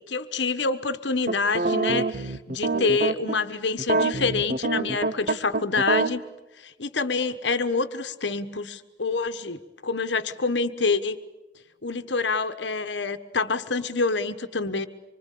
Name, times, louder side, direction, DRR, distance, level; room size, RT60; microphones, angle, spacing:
voice 1, 0.0-6.2 6.6-11.2 11.8-14.9, left 4 dB, 70° left, 11 dB, 1.3 m, -27 dB
sound 1, 1.3-3.4 3.8-6.1, right 2 dB, 45° right, 1.0 m, -25 dB
26.0 x 24.5 x 8.5 m, 1.1 s
head